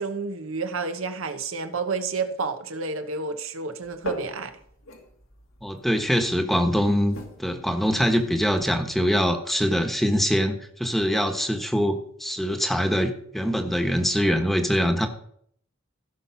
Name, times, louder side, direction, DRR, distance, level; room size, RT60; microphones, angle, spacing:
voice 1, 0.0-4.5, right 4 dB, 80° right, 8 dB, 1.1 m, -30 dB
sound 1, 3.8-9.2, left 1 dB, 85° left, 2.2 m, -43 dB
voice 2, 5.6-7.1 7.4-15.1, equal, ahead, 5 dB, 1.2 m, -23 dB
16.0 x 5.8 x 5.8 m, 0.65 s
head